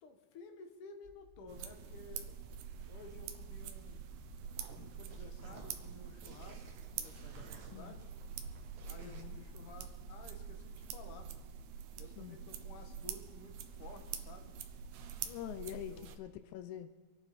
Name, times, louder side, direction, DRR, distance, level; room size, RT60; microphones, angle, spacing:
voice 1, 0.0-2.4 2.9-4.0 4.7-8.1 8.8-11.3 12.0-14.5 15.9-16.1, left 4 dB, 55° left, 5 dB, 2.0 m, -54 dB
sound 1, 1.0-10.4, left 2 dB, 30° left, 4.5 m, -61 dB
sound 2, 1.5-16.2, right 7 dB, 85° right, 2.2 m, -46 dB
sound 3, 4.4-9.2, right 5 dB, 60° right, 2.2 m, -58 dB
voice 2, 9.0-9.4 12.2-12.4 15.3-16.9, left 11 dB, 85° left, 11 dB, 2.0 m, -45 dB
25.5 x 9.4 x 4.2 m, 1.3 s
omnidirectional pair, 3.3 m